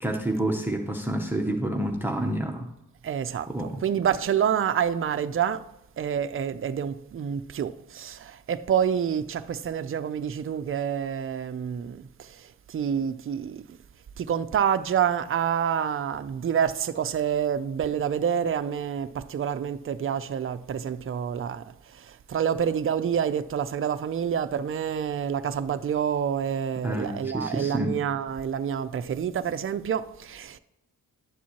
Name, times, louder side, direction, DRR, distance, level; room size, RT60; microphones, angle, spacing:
voice 1, 0.0-2.7 3.5-3.8 26.8-27.9, right 1 dB, 5° right, 0.7 m, -28 dB
voice 2, 3.0-5.6 6.0-12.0 12.7-13.6 14.2-21.6 22.3-30.6, right 8 dB, 40° right, 0.4 m, -27 dB
11.0 x 7.3 x 2.9 m
cardioid pair, 95°, 35 cm